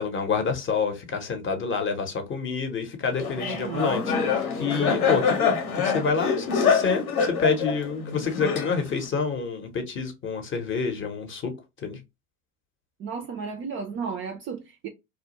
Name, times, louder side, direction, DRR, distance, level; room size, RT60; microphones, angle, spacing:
voice 1, 0.0-11.5 11.8-12.0, left 5 dB, 30° left, 0.7 m, -28 dB
Laughter, 3.2-9.1, left 6 dB, 90° left, 0.9 m, -25 dB
voice 2, 3.4-4.0 13.0-14.9, right 6 dB, 30° right, 0.4 m, -34 dB
2.3 x 2.0 x 2.8 m
hypercardioid pair, 80°, 43 cm